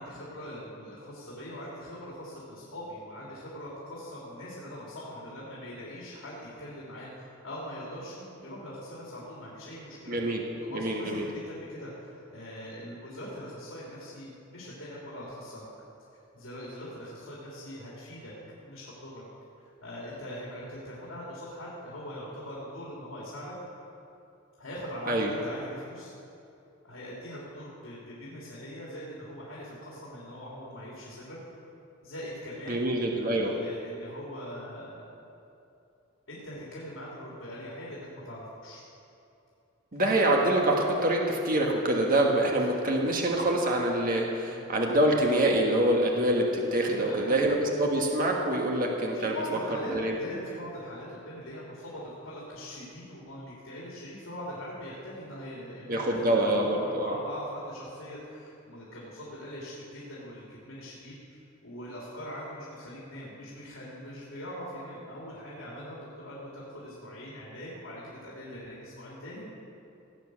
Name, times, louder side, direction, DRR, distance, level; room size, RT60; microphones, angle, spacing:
voice 1, 0.0-10.2 10.6-15.7 16.3-18.3 18.6-19.2 19.8-23.5 24.6-26.1 26.8-31.4 32.0-32.9 33.3-35.1 36.3-38.8 42.4-42.8 44.4-44.6 46.8-47.5 49.1-69.5, equal, 80° left, -6 dB, 3.3 m, -42 dB
voice 2, 10.1-10.4 10.7-11.3 25.1-25.3 32.7-33.6 39.9-49.4 49.9-50.2 55.9-57.2, right 1 dB, 45° right, 0 dB, 1.5 m, -25 dB
17.5 x 8.3 x 6.4 m, 2.7 s
head